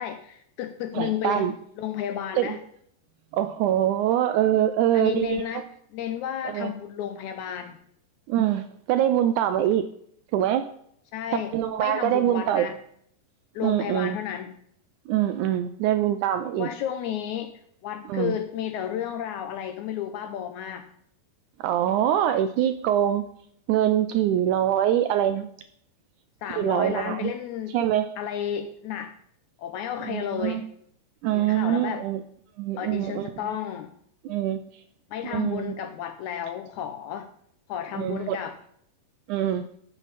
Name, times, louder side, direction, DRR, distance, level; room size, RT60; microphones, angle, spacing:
voice 1, 0.0-1.5 1.8-2.6 4.9-5.6 5.9-7.8 11.1-12.8 13.6-14.6 16.5-20.8 26.4-27.8 28.2-29.1 29.6-30.6 31.3-32.1 32.8-33.9 35.1-37.3 37.7-38.5, left 10 dB, 75° left, 8 dB, 1.8 m, -32 dB
voice 2, 0.9-1.5 2.4-2.6 3.3-5.6 6.5-6.7 8.3-9.9 10.3-10.7 11.5-12.7 13.6-14.2 15.1-16.7 18.1-18.3 21.6-23.2 23.7-25.5 26.5-27.3 27.7-28.1 30.1-30.6 31.2-32.2 32.6-33.4 34.3-34.6 35.3-35.7 38.0-38.4 39.3-39.7, right 11 dB, 80° right, 10 dB, 1.8 m, -24 dB
14.0 x 7.3 x 4.1 m, 0.66 s
omnidirectional pair, 4.0 m